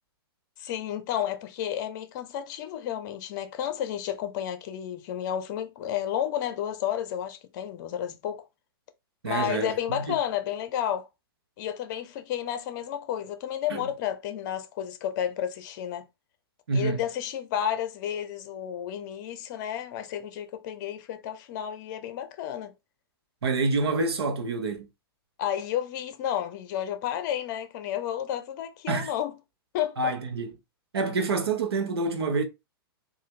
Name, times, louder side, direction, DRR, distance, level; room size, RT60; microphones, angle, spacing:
voice 1, 0.6-8.5 9.2-11.1 11.6-16.0 16.7-22.7 25.4-29.3 29.7-30.1, left 10 dB, 50° left, 0.7 m, -31 dB
voice 2, 9.2-10.1 13.7-13.8 16.7-17.0 23.4-24.9 28.9-29.1 30.0-30.5 30.9-32.4, right 3 dB, 85° right, 0.9 m, -27 dB
3.8 x 2.5 x 3.1 m
hypercardioid pair, 125°, 13 cm